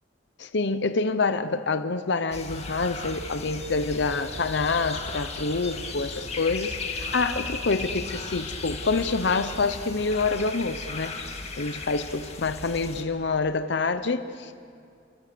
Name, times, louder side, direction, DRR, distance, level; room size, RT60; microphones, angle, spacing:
voice 1, 0.4-11.2 11.6-14.5, left 3 dB, 65° left, 10 dB, 0.8 m, -27 dB
sound 1, 2.3-13.0, left 3 dB, 35° left, 2.1 m, -36 dB
29.0 x 24.5 x 6.9 m, 2.3 s
head